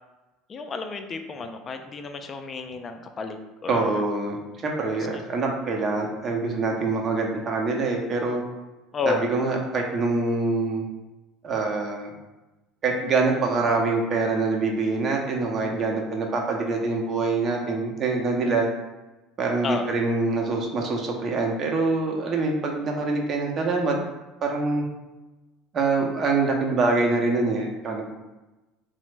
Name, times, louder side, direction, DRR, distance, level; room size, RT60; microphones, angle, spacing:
voice 1, 0.5-3.4 3.6-4.0 4.9-5.1 8.9-9.3 19.6-19.9, left 4 dB, 35° left, 6 dB, 0.4 m, -31 dB
voice 2, 3.7-8.4 9.1-10.9 11.4-12.1 12.8-18.7 19.4-24.0 24.4-24.8 25.7-28.1, right 3 dB, 45° right, 1 dB, 0.6 m, -25 dB
3.0 x 2.0 x 3.3 m, 1.1 s
hypercardioid pair, 85°, 0 cm